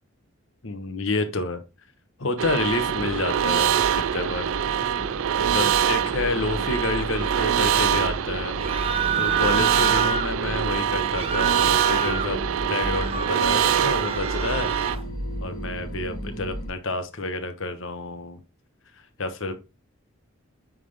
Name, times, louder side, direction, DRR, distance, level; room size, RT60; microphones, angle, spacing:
voice 1, 0.6-1.6 2.2-4.5 5.4-8.6 9.2-12.4 12.7-14.7 15.4-18.4 19.2-19.6, left 3 dB, 65° left, 8 dB, 1.0 m, -29 dB
sound 1, 2.4-16.7, equal, 35° left, 3.1 m, -34 dB
sound 2, 2.4-15.0, right 9 dB, 70° right, 0.4 m, -24 dB
sound 3, 8.6-10.3 11.0-12.3 12.7-15.0, right 6 dB, 25° right, 0.7 m, -28 dB
9.2 x 3.7 x 3.3 m, 0.27 s
head